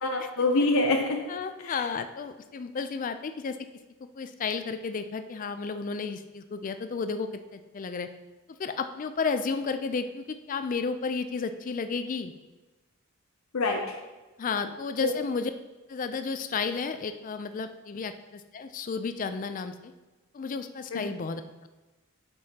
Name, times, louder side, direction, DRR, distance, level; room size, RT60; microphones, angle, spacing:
voice 1, 0.0-1.2 1.6-1.8 13.5-14.0 15.0-15.1 20.9-21.1, left 2 dB, 70° left, 2 dB, 0.7 m, -25 dB
voice 2, 1.3-3.6 4.2-8.1 8.6-12.3 14.4-15.5 15.9-19.9 20.3-21.7, left 5 dB, 40° left, 9 dB, 0.4 m, -32 dB
8.4 x 6.2 x 2.8 m, 1.2 s
head